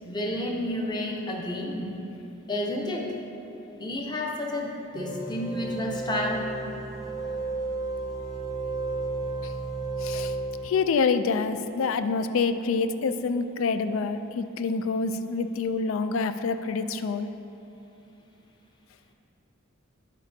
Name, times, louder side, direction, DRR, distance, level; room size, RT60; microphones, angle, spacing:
voice 1, 0.0-2.1 2.5-3.1 3.8-6.4, left 1 dB, 20° left, 0 dB, 0.7 m, -30 dB
sound 1, 4.9-11.1, right 3 dB, 15° right, 0.6 m, -33 dB
voice 2, 10.0-10.3 10.6-17.3, left 4 dB, 70° left, 11 dB, 0.3 m, -27 dB
9.5 x 7.3 x 2.7 m, 3.0 s
head